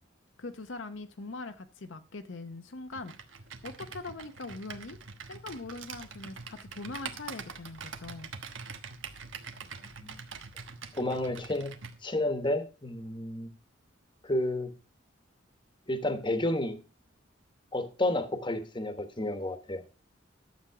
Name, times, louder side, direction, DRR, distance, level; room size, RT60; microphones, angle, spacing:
voice 1, 0.4-3.1 3.6-5.0 5.3-8.3, left 3 dB, 70° left, 0.8 m, -42 dB
Computer keyboard, 2.9-12.0, right 5 dB, 75° right, 1.2 m, -44 dB
voice 2, 10.9-11.7 12.0-13.5 14.2-14.7 15.9-16.8 17.7-19.8, left 1 dB, 25° left, 1.2 m, -31 dB
11.5 x 7.4 x 4.7 m
head